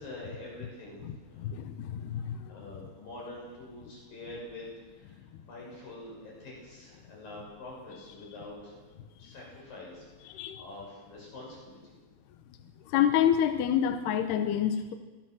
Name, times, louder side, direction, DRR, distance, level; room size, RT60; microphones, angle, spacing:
voice 1, 0.0-1.5 2.5-12.0, left 1 dB, 45° left, -3 dB, 8.0 m, -46 dB
voice 2, 1.0-2.6 9.2-9.3 10.2-10.6 12.9-14.9, left 9 dB, 75° left, 6 dB, 2.6 m, -28 dB
26.5 x 19.5 x 6.4 m, 1.3 s
omnidirectional pair, 5.7 m